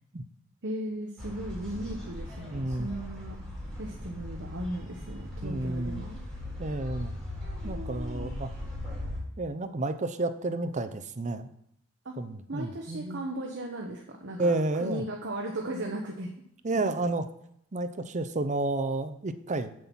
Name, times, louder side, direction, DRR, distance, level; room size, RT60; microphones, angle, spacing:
voice 1, 0.6-3.4 3.8-6.2 7.6-8.3 12.0-12.1 12.5-16.3, right 1 dB, 60° right, 1 dB, 1.1 m, -37 dB
sound 1, 1.2-9.2, left 1 dB, ahead, 4.1 m, -39 dB
voice 2, 2.5-2.9 5.4-6.0 6.6-7.1 7.6-8.5 9.4-11.5 12.2-13.2 14.4-15.0 16.6-17.2 17.7-19.7, right 2 dB, 35° right, 10 dB, 0.7 m, -31 dB
7.7 x 6.0 x 7.2 m, 0.72 s
head